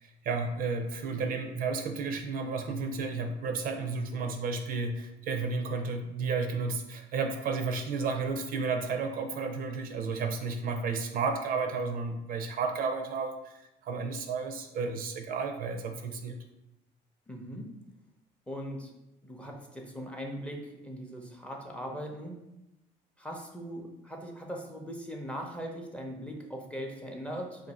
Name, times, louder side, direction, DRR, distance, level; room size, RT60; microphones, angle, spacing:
voice 1, 0.0-16.4, right 4 dB, 60° right, 6 dB, 0.4 m, -32 dB
voice 2, 17.3-17.8 18.5-19.0 19.2-22.5 23.2-27.7, equal, 5° left, 0 dB, 0.5 m, -40 dB
2.6 x 2.5 x 4.0 m, 0.89 s
cardioid pair, 110°, 17 cm